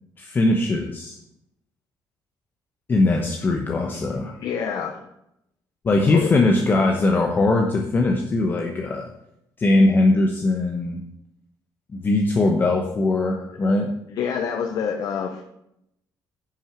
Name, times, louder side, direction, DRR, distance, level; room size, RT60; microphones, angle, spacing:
voice 1, 0.2-1.2 2.9-4.3 5.8-9.1 9.6-11.0 11.9-13.9, left 2 dB, 25° left, 2 dB, 1.0 m, -20 dB
voice 2, 4.4-5.0 6.1-6.3 14.1-15.4, left 7 dB, 55° left, 5 dB, 0.9 m, -26 dB
10.0 x 6.2 x 5.9 m, 0.81 s
cardioid pair, 155°, 8 cm